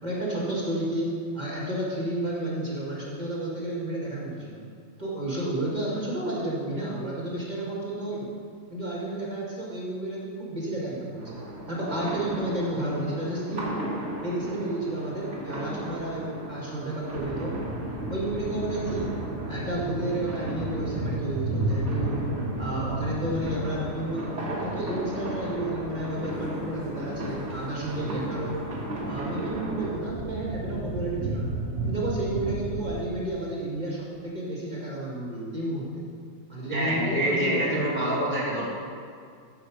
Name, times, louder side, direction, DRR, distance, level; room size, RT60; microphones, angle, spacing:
voice 1, 0.0-4.6 5.0-8.3 8.7-11.4 11.7-13.9 14.2-17.6 18.1-19.2 19.5-22.2 22.6-28.6 29.0-31.6 31.9-36.1 36.5-37.9, right 1 dB, 25° right, -5 dB, 2.1 m, -31 dB
sound 1, 11.2-29.9, right 1 dB, 40° right, 1.9 m, -36 dB
sound 2, 17.1-32.9, right 2 dB, 45° left, 3.1 m, -34 dB
voice 2, 36.7-38.7, right 1 dB, 5° left, -6 dB, 1.4 m, -26 dB
10.5 x 7.5 x 5.2 m, 2.3 s
omnidirectional pair, 2.0 m